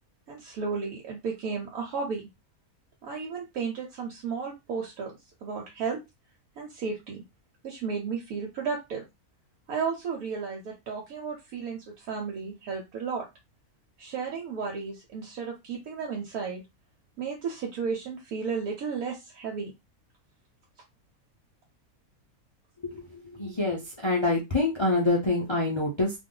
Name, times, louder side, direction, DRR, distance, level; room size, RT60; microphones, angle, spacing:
voice 1, 0.3-2.3 3.0-6.0 6.6-7.2 7.6-9.0 9.7-13.3 14.0-16.6 17.2-19.7, right 5 dB, 75° right, 0 dB, 1.1 m, -33 dB
voice 2, 23.1-26.1, left 2 dB, 50° left, -2 dB, 0.3 m, -26 dB
2.5 x 2.4 x 3.7 m, 0.23 s
omnidirectional pair, 1.6 m